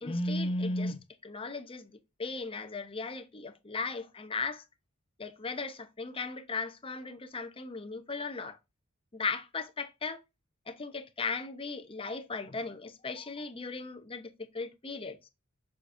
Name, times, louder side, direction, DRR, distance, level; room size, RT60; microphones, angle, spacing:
voice 1, 0.0-4.6 5.2-8.6 9.1-10.2 10.7-15.2, left 3 dB, 25° left, 0.8 m, -36 dB
7.2 x 5.2 x 2.6 m
head